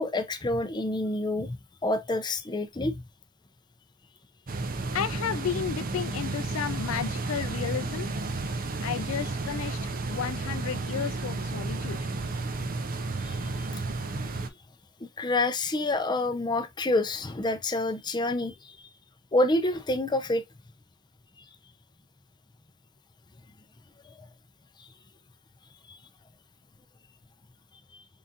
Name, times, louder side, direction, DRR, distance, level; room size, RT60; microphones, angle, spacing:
voice 1, 0.0-1.6 1.8-3.0 13.2-13.7 15.0-18.8 19.3-20.4 24.0-24.3 24.8-24.9 25.9-26.0, left 2 dB, 20° left, 0.5 m, -28 dB
sound 1, 4.5-14.5, right 3 dB, 45° right, 0.7 m, -32 dB
voice 2, 4.9-8.1 8.8-12.0, left 8 dB, 70° left, 0.4 m, -33 dB
4.1 x 3.9 x 2.4 m
head